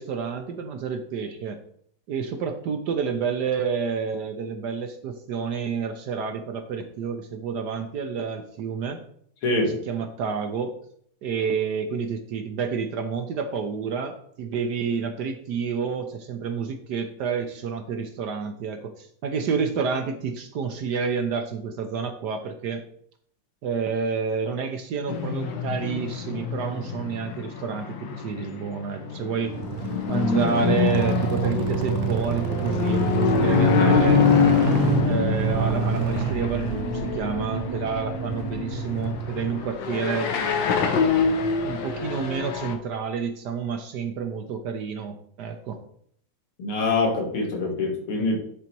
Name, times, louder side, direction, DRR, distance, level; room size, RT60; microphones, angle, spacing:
voice 1, 0.0-1.6 2.1-9.0 9.7-10.7 11.2-22.8 23.6-29.6 30.1-34.3 35.0-40.3 41.6-45.8, right 6 dB, 65° right, 6 dB, 1.1 m, -29 dB
sound 1, 25.1-42.8, left 6 dB, 65° left, 1.6 m, -25 dB
sound 2, 29.5-39.5, right 12 dB, 90° right, 1.5 m, -29 dB
voice 2, 46.6-48.4, left 3 dB, 85° left, 0 dB, 2.5 m, -24 dB
8.8 x 4.0 x 4.5 m, 0.64 s
omnidirectional pair, 2.3 m